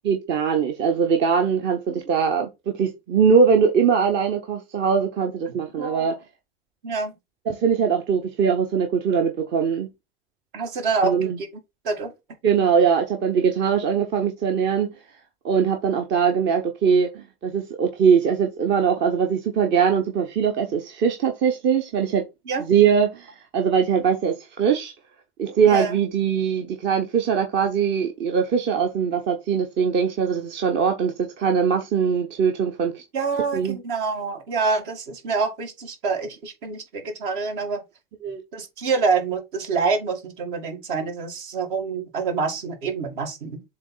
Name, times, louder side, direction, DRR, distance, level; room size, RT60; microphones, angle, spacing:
voice 1, 0.0-6.1 7.5-9.9 11.0-11.4 12.4-14.9 15.4-22.2 22.7-24.9 25.4-33.0 33.5-33.8 38.2-38.4, right 6 dB, 40° right, 1.0 m, -21 dB
voice 2, 5.8-6.1 6.8-7.1 10.5-11.5 11.8-12.1 22.5-22.6 25.7-25.9 33.1-37.8 38.5-43.6, right 4 dB, 60° right, 2.0 m, -26 dB
7.4 x 3.3 x 4.1 m
figure-of-eight pair, 80°, 30 cm